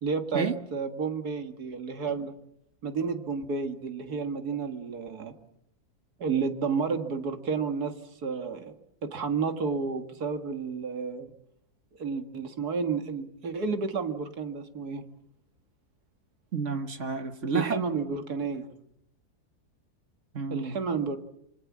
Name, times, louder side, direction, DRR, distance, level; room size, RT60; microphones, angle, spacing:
voice 1, 0.0-2.3 2.8-5.3 6.2-7.9 8.2-8.7 9.0-11.3 12.0-15.1 17.5-18.7 20.5-21.2, right 5 dB, 75° right, 8 dB, 2.3 m, -31 dB
voice 2, 16.5-17.9 20.3-20.8, right 4 dB, 50° right, 9 dB, 1.7 m, -30 dB
26.5 x 23.5 x 7.4 m, 0.75 s
omnidirectional pair, 1.7 m